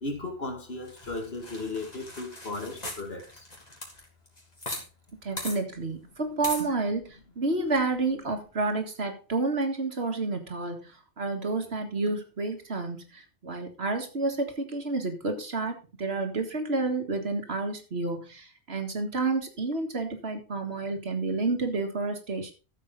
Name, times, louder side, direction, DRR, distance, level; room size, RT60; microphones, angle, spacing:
voice 1, 0.0-3.5 7.6-7.7, left 2 dB, 65° left, 2.6 m, -36 dB
sound 1, 0.9-4.8 5.1-5.2 5.4-5.6 6.4-6.7, left 1 dB, 35° left, 3.0 m, -39 dB
voice 2, 5.2-7.0 7.4-10.9 11.2-22.5, right 3 dB, 70° right, 2.1 m, -30 dB
13.5 x 7.4 x 3.9 m
omnidirectional pair, 1.1 m